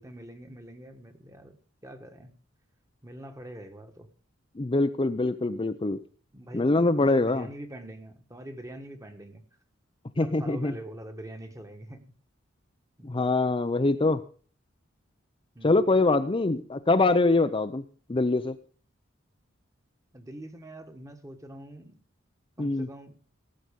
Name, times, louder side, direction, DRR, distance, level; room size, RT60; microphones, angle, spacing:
voice 1, 0.0-1.6 1.8-2.3 3.0-4.1 6.3-6.7 7.0-9.4 10.2-12.0 13.0-13.1 15.5-15.8 20.1-22.0 22.6-23.2, right 1 dB, 15° right, 6 dB, 1.5 m, -43 dB
voice 2, 4.6-6.0 6.5-7.5 10.2-10.7 13.0-14.2 15.6-17.8 18.1-18.6 22.6-22.9, left 2 dB, 25° left, 8 dB, 0.6 m, -24 dB
17.0 x 7.8 x 5.3 m, 0.42 s
head